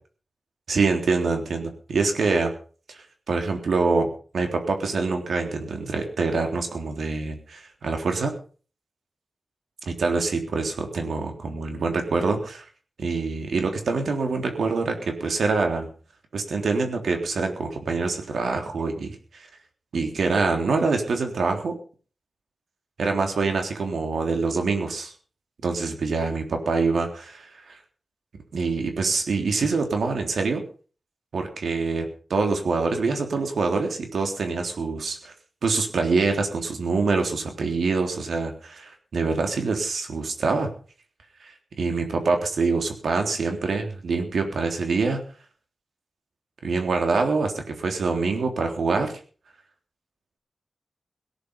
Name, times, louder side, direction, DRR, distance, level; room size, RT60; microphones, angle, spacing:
voice 1, 0.7-2.5 2.9-8.3 9.9-12.7 13.0-15.9 16.3-19.5 19.9-21.8 23.0-25.1 25.6-27.8 28.5-30.6 31.3-35.3 35.6-40.7 41.4-45.2 46.6-49.2, right 4 dB, 85° right, 4 dB, 3.5 m, -25 dB
18.0 x 10.5 x 5.5 m, 0.40 s
wide cardioid pair, 125°, 0 cm